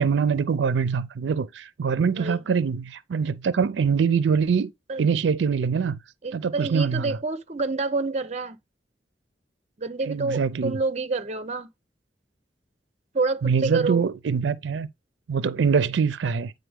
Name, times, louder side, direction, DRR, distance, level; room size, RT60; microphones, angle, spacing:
voice 1, 0.0-4.7 5.0-6.0 6.3-7.2 10.1-10.8 13.4-14.9 15.3-16.5, right 6 dB, 90° right, 0.4 m, -24 dB
voice 2, 6.2-8.6 9.8-11.7 13.1-14.1, right 3 dB, 40° right, 0.6 m, -28 dB
9.1 x 3.8 x 3.4 m
head